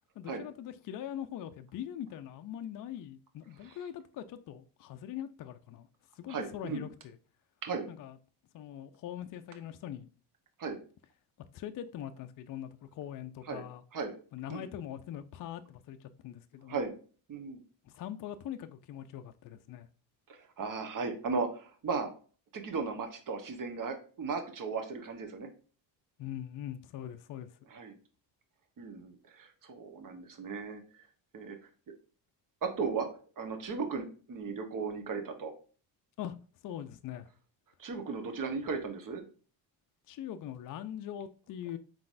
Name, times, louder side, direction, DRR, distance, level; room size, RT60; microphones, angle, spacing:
voice 1, 0.2-5.9 6.2-7.2 7.9-8.2 8.5-10.1 11.5-13.8 14.3-16.8 17.8-19.9 26.2-27.6 36.2-36.4 36.6-37.3 40.1-41.8, left 10 dB, 50° left, 0.4 m, -42 dB
voice 2, 6.3-6.8 7.6-7.9 10.6-10.8 13.5-13.6 13.9-14.1 14.5-14.7 16.7-16.9 17.3-17.6 20.3-22.1 22.5-25.5 27.7-28.0 28.8-31.0 31.3-31.6 32.6-33.1 33.4-35.5 37.8-39.2, right 4 dB, 45° right, 1.0 m, -36 dB
4.8 x 3.8 x 2.5 m
supercardioid pair, 75°, 45 cm